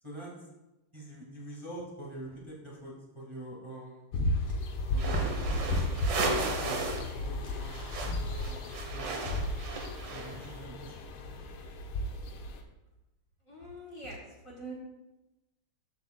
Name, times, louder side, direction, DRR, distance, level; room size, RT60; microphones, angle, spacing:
voice 1, 0.0-0.5 0.9-4.1 4.9-5.8 6.1-9.1 10.1-11.7, right 1 dB, 15° right, -4 dB, 1.8 m, -45 dB
sound 1, 4.1-12.6, left 1 dB, 85° left, 1.7 m, -34 dB
indicator stalk, 4.5-4.6 5.7-6.0 6.7-6.8 7.4-7.7 8.1-8.3 9.2-9.5, left 1 dB, 25° left, 2.0 m, -49 dB
sound 2, 4.9-7.1 7.4-10.5, right 3 dB, 60° right, 1.7 m, -35 dB
voice 2, 13.5-14.2 14.4-14.7, right 1 dB, 45° left, -3 dB, 1.6 m, -43 dB
13.5 x 7.5 x 2.2 m, 1.0 s
omnidirectional pair, 2.3 m